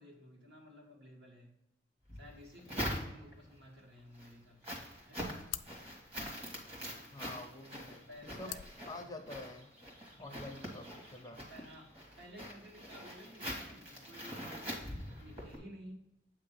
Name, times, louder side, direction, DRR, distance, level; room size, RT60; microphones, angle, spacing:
voice 1, 0.0-1.5 2.2-5.4 8.1-8.6 10.1-10.4 11.2-16.1, equal, 65° right, -1 dB, 1.7 m, -54 dB
sound 1, 2.1-3.5 4.0-15.6, equal, 35° right, 1.5 m, -44 dB
sound 2, 4.7-9.7, left 13 dB, 85° left, 0.4 m, -51 dB
voice 2, 7.1-8.6 8.9-9.7 10.2-11.4, left 2 dB, 20° left, 4 dB, 0.5 m, -47 dB
8.1 x 2.9 x 5.4 m, 0.89 s
head